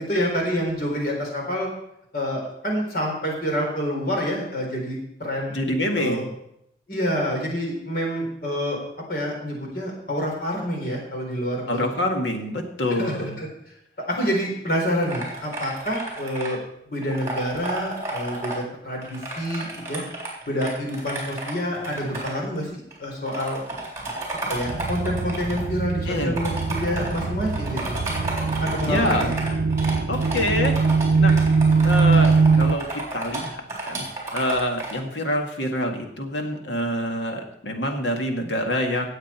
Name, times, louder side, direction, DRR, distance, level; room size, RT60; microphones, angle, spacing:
voice 1, 0.0-1.7 2.1-5.6 6.0-6.2 6.9-8.8 9.1-11.8 13.0-13.5 14.1-16.6 16.9-20.0 20.5-23.6 24.5-27.8 28.6-29.3, equal, 55° left, 0 dB, 4.1 m, -27 dB
voice 2, 5.5-6.3 11.7-13.4 26.1-26.3 28.9-29.3 30.1-30.7 31.2-31.4 31.8-33.6 33.9-34.1 34.3-39.1, left 1 dB, 85° left, 3 dB, 2.0 m, -26 dB
sound 1, 15.0-16.5 17.0-18.6 19.0-22.3 22.9-23.0 23.3-25.6 26.4-34.9, right 2 dB, 15° right, 3.6 m, -32 dB
sound 2, 24.7-32.7, right 4 dB, 75° right, 0.6 m, -22 dB
17.5 x 8.1 x 4.5 m, 0.77 s
head